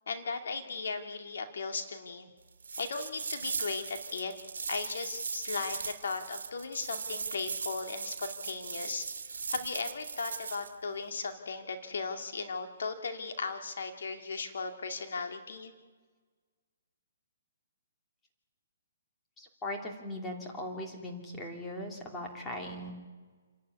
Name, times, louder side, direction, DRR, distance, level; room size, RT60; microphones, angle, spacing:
voice 1, 0.1-2.3 2.8-4.3 4.7-9.1 9.5-15.7, left 4 dB, 75° left, 6 dB, 2.3 m, -37 dB
sound 1, 2.6-10.7, right 5 dB, 90° right, 1.5 m, -39 dB
voice 2, 19.4-22.9, left 1 dB, 10° left, 1 dB, 2.9 m, -39 dB
28.5 x 11.5 x 9.6 m, 1.4 s
hypercardioid pair, 160°, 0 cm